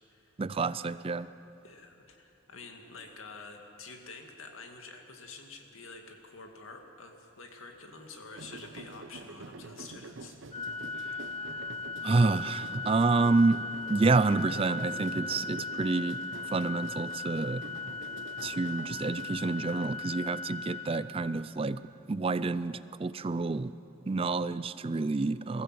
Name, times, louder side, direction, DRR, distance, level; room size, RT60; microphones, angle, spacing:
voice 1, 0.4-1.3 12.0-13.6 13.9-16.2 16.5-17.6 18.4-21.8 22.1-23.7 24.1-25.6, right 3 dB, 25° right, 16 dB, 0.4 m, -28 dB
voice 2, 1.6-10.3, left 3 dB, 80° left, 3 dB, 2.3 m, -48 dB
sound 1, 8.4-20.0, right 2 dB, 65° right, 0.9 m, -47 dB
Organ, 10.5-21.6, left 4 dB, 30° left, 1.4 m, -38 dB
22.5 x 15.5 x 7.7 m, 2.9 s
head